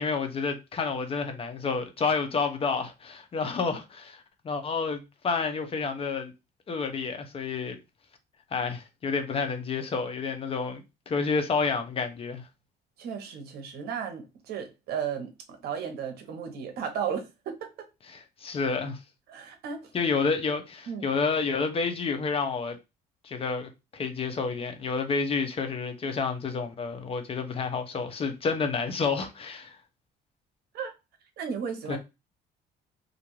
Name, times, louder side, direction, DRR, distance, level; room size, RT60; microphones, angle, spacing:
voice 1, 0.0-6.3 6.7-7.8 8.5-12.4 18.1-19.0 19.9-22.8 23.2-29.8 31.9-32.0, left 4 dB, 35° left, 0.5 m, -29 dB
voice 2, 13.0-17.9 19.3-19.9 20.9-21.1 30.7-30.9 31.4-32.0, right 7 dB, 70° right, 0.8 m, -35 dB
2.5 x 2.2 x 3.0 m
cardioid pair, 110°, 17 cm